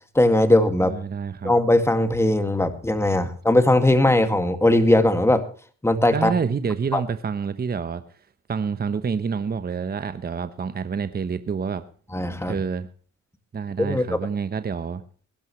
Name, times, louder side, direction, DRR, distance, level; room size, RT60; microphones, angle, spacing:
voice 1, 0.1-0.9 1.4-5.5 5.8-6.3 6.9-7.0 12.1-12.6 13.8-14.2, left 1 dB, 10° left, 8 dB, 2.2 m, -19 dB
voice 2, 0.8-1.5 6.1-8.0 8.5-11.8 12.4-12.9 13.5-15.0, right 6 dB, 30° right, 11 dB, 1.0 m, -27 dB
20.0 x 12.0 x 3.2 m, 0.41 s
cardioid pair, 90°, 30 cm